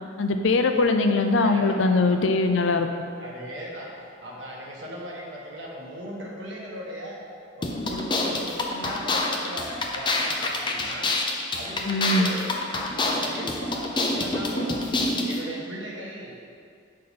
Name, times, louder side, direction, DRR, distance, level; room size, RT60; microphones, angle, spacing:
voice 1, 0.2-2.9 11.8-12.3, left 3 dB, 70° left, 6 dB, 0.6 m, -21 dB
voice 2, 1.4-2.2 3.2-4.0 4.2-7.2 7.5-11.2 11.5-12.6 12.9-14.9 15.2-16.3, right 1 dB, 75° right, -3 dB, 1.4 m, -38 dB
sound 1, 7.6-15.4, left 2 dB, 25° left, 0.6 m, -27 dB
8.6 x 5.3 x 4.2 m, 2.3 s
head